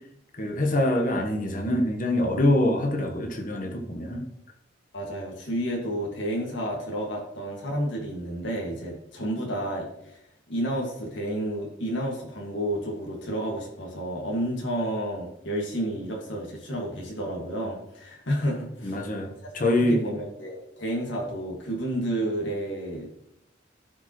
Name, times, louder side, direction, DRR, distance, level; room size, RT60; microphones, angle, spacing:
voice 1, 0.4-4.2 18.8-20.0, left 1 dB, 45° left, 3 dB, 1.1 m, -25 dB
voice 2, 4.9-9.9 10.5-19.2 19.6-23.1, right 1 dB, 70° left, -2 dB, 1.9 m, -31 dB
15.0 x 5.0 x 3.0 m, 0.79 s
head